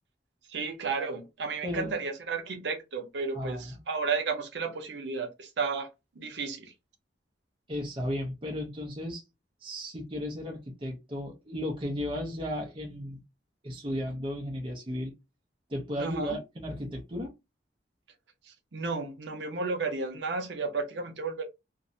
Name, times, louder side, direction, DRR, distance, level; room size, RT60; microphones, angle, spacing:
voice 1, 0.5-5.9 6.2-6.7 16.0-16.3 18.7-21.4, right 4 dB, 75° right, 0.6 m, -33 dB
voice 2, 3.3-3.8 7.7-9.2 9.6-13.2 13.6-15.1 15.7-17.3, left 1 dB, 30° right, 0.6 m, -34 dB
2.6 x 2.0 x 2.6 m
head